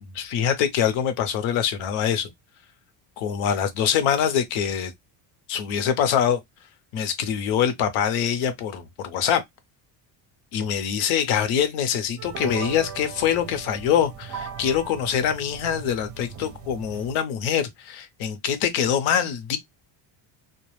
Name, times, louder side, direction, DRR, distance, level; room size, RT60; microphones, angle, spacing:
voice 1, 0.1-2.3 3.2-4.9 5.5-6.4 6.9-9.4 10.5-19.6, left 8 dB, 75° left, 0.8 m, -24 dB
sound 1, 12.2-17.2, right 7 dB, 40° right, 0.5 m, -38 dB
2.3 x 2.1 x 3.1 m
cardioid pair, 155°, 48 cm